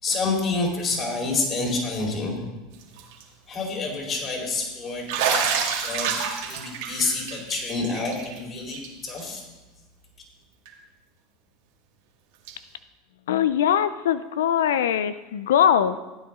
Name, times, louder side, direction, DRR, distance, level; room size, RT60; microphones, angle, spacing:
voice 1, 0.0-2.5 3.5-5.5 5.8-6.1 6.4-9.4, left 3 dB, 35° left, 0 dB, 4.2 m, -28 dB
Bathtub (filling or washing), 2.8-3.2 3.5-3.6 5.1-8.4 8.7-8.9 9.2-9.3 10.7-10.8 12.5-12.6, right 6 dB, 70° right, 2.0 m, -28 dB
voice 2, 13.3-16.0, left 9 dB, 80° left, 14 dB, 0.4 m, -21 dB
15.0 x 9.6 x 3.7 m, 1.1 s
hypercardioid pair, 90°, 0 cm